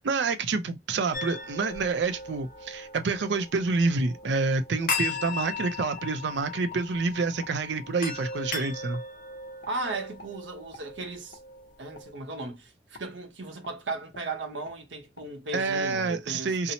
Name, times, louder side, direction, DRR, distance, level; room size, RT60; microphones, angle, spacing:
voice 1, 0.0-9.0 15.5-16.7, right 4 dB, 70° right, 0.5 m, -28 dB
sound 1, 1.1-12.1, left 4 dB, 50° left, 0.7 m, -38 dB
sound 2, 4.2-4.4 4.8-5.0 5.4-6.1 6.7-6.9 7.4-7.6 8.2-8.3 8.9-9.1 9.6-9.8 10.2-10.4 10.7-10.9 11.3-11.5 11.9-12.1 12.9-13.1 13.6-13.8 14.1-14.3 14.6-14.8 15.2-15.3 15.7-15.8, left 2 dB, 75° left, 0.9 m, -50 dB
voice 2, 9.7-11.4 11.8-16.7, right 2 dB, 85° right, 0.9 m, -36 dB
2.7 x 2.0 x 2.8 m
head